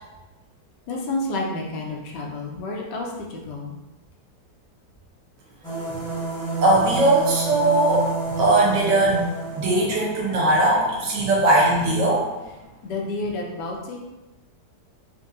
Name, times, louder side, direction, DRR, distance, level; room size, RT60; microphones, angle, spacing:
voice 1, 0.9-3.7 12.8-14.0, left 2 dB, 80° left, -1 dB, 1.3 m, -30 dB
sound 1, 5.6-12.6, right 3 dB, 5° left, 1.2 m, -31 dB
voice 2, 6.6-9.3 9.5-12.3, right 2 dB, 90° right, -3 dB, 1.5 m, -19 dB
4.3 x 2.6 x 2.5 m, 1.1 s
omnidirectional pair, 1.8 m